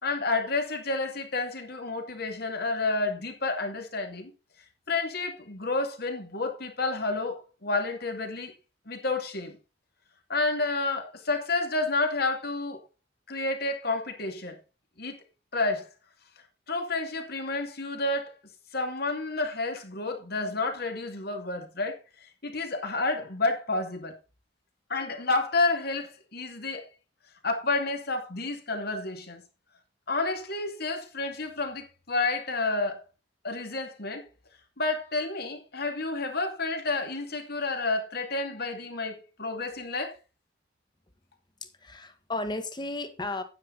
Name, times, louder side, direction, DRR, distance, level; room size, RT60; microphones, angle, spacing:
voice 1, 0.0-4.3 4.9-8.5 8.9-9.6 10.3-12.8 13.3-14.6 15.0-15.2 15.5-15.9 16.7-18.3 18.7-22.0 22.4-24.1 24.9-26.9 27.4-29.4 30.1-33.0 33.4-34.3 34.8-40.1, left 3 dB, 60° left, 2.5 m, -30 dB
voice 2, 41.6-43.4, left 2 dB, 25° left, 1.5 m, -34 dB
9.6 x 9.6 x 4.1 m
head